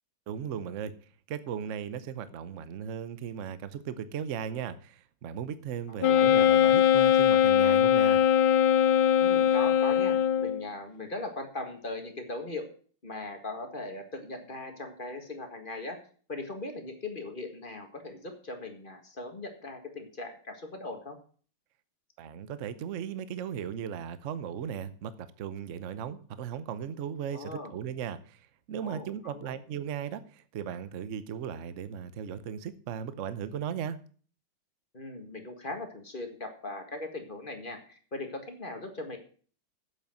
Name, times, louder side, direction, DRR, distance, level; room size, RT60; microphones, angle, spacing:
voice 1, 0.3-0.9 1.3-8.2 22.2-28.4 28.7-34.0, right 8 dB, 60° right, 13 dB, 0.7 m, -37 dB
voice 2, 5.9-6.7 9.2-12.6 13.0-16.0 16.3-21.2 27.3-27.7 28.8-29.6 34.9-39.2, left 2 dB, 25° left, 4 dB, 1.6 m, -39 dB
Wind instrument woodwind instrument, 6.0-10.7, left 9 dB, 70° left, 1.1 m, -21 dB
8.2 x 7.5 x 7.6 m, 0.44 s
omnidirectional pair, 2.4 m